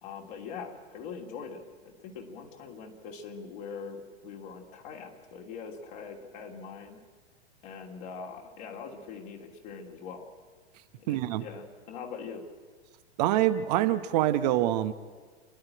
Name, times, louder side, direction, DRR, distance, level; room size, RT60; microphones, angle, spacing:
voice 1, 0.0-7.0 7.6-10.3 11.0-12.5, left 5 dB, 45° left, 1 dB, 2.8 m, -42 dB
voice 2, 11.1-11.4 13.2-14.9, right 13 dB, 40° right, 11 dB, 1.0 m, -25 dB
29.0 x 11.0 x 8.9 m, 1.5 s
figure-of-eight pair, 100°, 32 cm